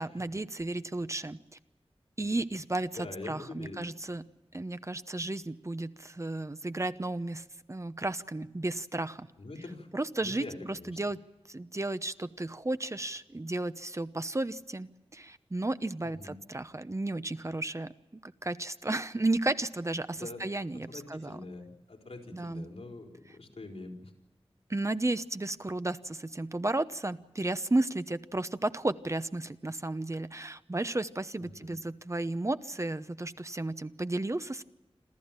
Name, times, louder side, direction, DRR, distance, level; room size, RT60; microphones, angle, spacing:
voice 1, 0.0-1.4 2.2-4.2 4.5-9.3 9.9-11.2 11.5-17.9 18.2-21.4 22.3-22.6 24.7-34.6, right 2 dB, 30° right, 12 dB, 0.9 m, -33 dB
voice 2, 3.0-3.8 9.4-9.9 10.2-11.0 16.0-16.3 20.1-20.4 20.7-24.1 31.4-31.8, left 2 dB, 85° left, 2 dB, 4.3 m, -44 dB
27.0 x 14.0 x 9.0 m, 1.0 s
wide cardioid pair, 60°, 10 cm